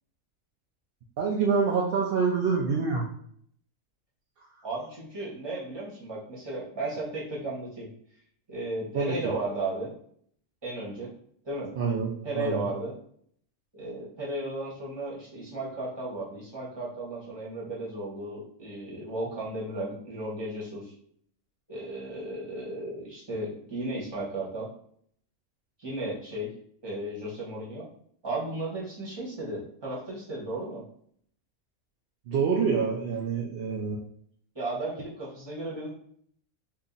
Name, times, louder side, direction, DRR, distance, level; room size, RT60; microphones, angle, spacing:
voice 1, 1.2-3.1 8.9-9.3 11.8-12.7 32.3-34.0, right 5 dB, 70° right, -2 dB, 0.5 m, -26 dB
voice 2, 4.6-7.9 8.5-9.9 10.6-11.1 11.4-11.7 12.2-12.9 13.7-20.9 21.7-24.7 25.8-26.5 26.8-27.9 28.2-30.8 34.5-35.9, right 2 dB, 20° right, -6 dB, 1.0 m, -34 dB
2.7 x 2.4 x 3.8 m, 0.63 s
omnidirectional pair, 1.5 m